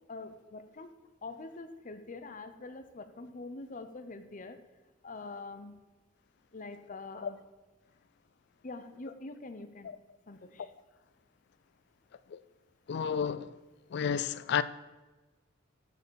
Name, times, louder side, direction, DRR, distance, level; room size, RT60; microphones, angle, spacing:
voice 1, 0.1-0.9 1.2-4.6 5.0-5.8 6.5-7.4 8.6-9.9 10.3-10.7, left 3 dB, 40° left, 0.8 m, -44 dB
voice 2, 12.9-13.5 13.9-14.6, left 7 dB, 60° left, 0.4 m, -31 dB
13.5 x 4.8 x 6.3 m
head